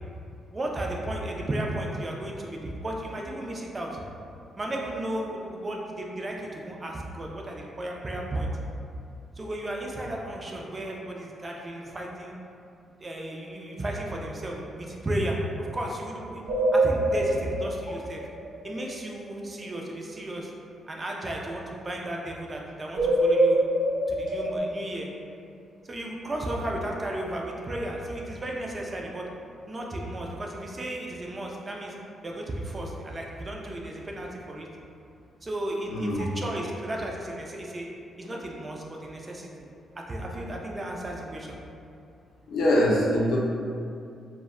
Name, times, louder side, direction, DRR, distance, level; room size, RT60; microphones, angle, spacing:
voice 1, 0.5-4.0 4.6-8.5 9.4-12.3 13.0-16.4 16.7-18.2 18.6-20.5 20.9-23.6 24.1-25.1 25.8-29.3 29.7-31.9 32.2-34.7 35.4-37.9 38.2-39.5 40.0-41.6, right 1 dB, 25° right, -1 dB, 0.3 m, -34 dB
sound 1, 16.4-18.9 22.9-24.6, right 1 dB, 75° right, 0.6 m, -24 dB
voice 2, 35.9-36.2 42.5-43.4, equal, 75° left, -4 dB, 0.5 m, -23 dB
2.1 x 2.0 x 3.5 m, 2.5 s
cardioid pair, 125°, 0 cm